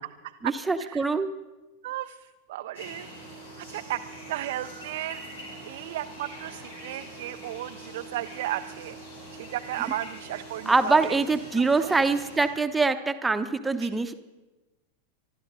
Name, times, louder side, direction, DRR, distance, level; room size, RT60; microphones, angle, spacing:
voice 1, 0.4-1.3 10.7-14.1, right 3 dB, 10° right, 10 dB, 0.9 m, -24 dB
voice 2, 1.8-2.2 2.5-3.1 3.6-4.0 4.3-5.2 5.6-9.0 9.5-11.2 11.8-11.9 13.8-13.9, right 14 dB, 55° right, 8 dB, 0.4 m, -34 dB
sound 1, 2.7-12.5, right 1 dB, 75° left, 5.0 m, -43 dB
25.0 x 12.5 x 3.9 m, 1.1 s
figure-of-eight pair, 90°, 0 cm